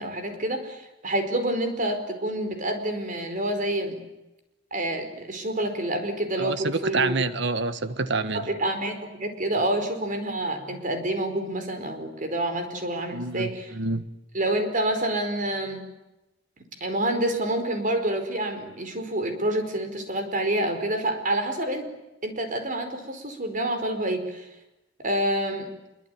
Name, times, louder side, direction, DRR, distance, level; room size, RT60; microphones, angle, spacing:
voice 1, 0.0-4.0 4.7-7.2 8.3-13.7 14.3-15.8 16.8-21.9 22.2-24.5 25.0-25.7, right 1 dB, 45° right, 7 dB, 4.9 m, -28 dB
voice 2, 6.4-8.5 13.1-14.0, right 3 dB, 65° right, 11 dB, 1.4 m, -27 dB
26.0 x 23.5 x 9.5 m, 0.96 s
head